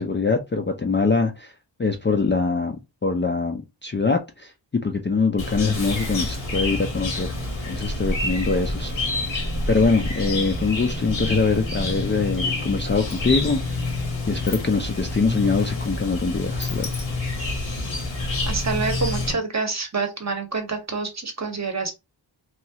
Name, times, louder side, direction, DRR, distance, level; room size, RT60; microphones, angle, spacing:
voice 1, 0.0-1.5 1.8-4.5 4.8-7.3 7.7-8.9 9.2-14.0 14.3-16.9, left 4 dB, 25° left, 0.3 m, -23 dB
Chirp tweet, 5.4-19.3, left 2 dB, 85° left, 1.1 m, -28 dB
Sliding door, 12.8-17.6, left 4 dB, 65° left, 0.9 m, -41 dB
voice 2, 18.5-21.9, right 4 dB, 35° right, 0.8 m, -27 dB
3.0 x 2.3 x 2.7 m
wide cardioid pair, 70°, 46 cm